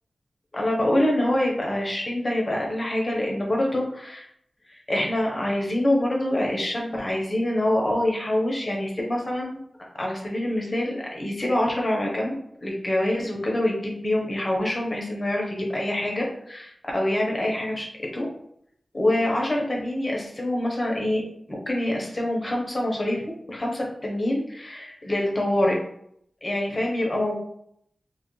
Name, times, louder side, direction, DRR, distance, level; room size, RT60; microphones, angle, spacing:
voice 1, 0.5-4.2 4.7-9.6 10.0-12.3 12.6-17.9 18.1-18.3 18.9-21.2 21.7-23.2 23.5-25.8 26.4-27.4, left 1 dB, 35° left, -2 dB, 0.9 m, -25 dB
2.8 x 2.5 x 3.1 m, 0.71 s
wide cardioid pair, 60°, 0 cm